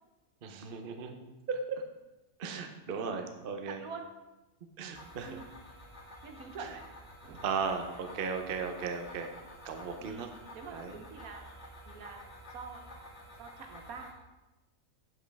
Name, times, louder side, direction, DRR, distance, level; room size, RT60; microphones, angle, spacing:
voice 1, 0.4-1.8 2.4-3.8 4.8-5.4 7.4-9.3 9.6-10.3 10.7-10.9, right 5 dB, 50° right, 5 dB, 0.8 m, -36 dB
voice 2, 3.7-4.1 5.2-5.5 6.2-6.8 7.2-7.5 10.0-11.5 11.8-14.2, right 5 dB, 75° right, 4 dB, 1.3 m, -46 dB
sound 1, 4.9-14.1, left 1 dB, 45° left, 2.1 m, -50 dB
8.3 x 7.6 x 3.4 m, 1.0 s
omnidirectional pair, 1.6 m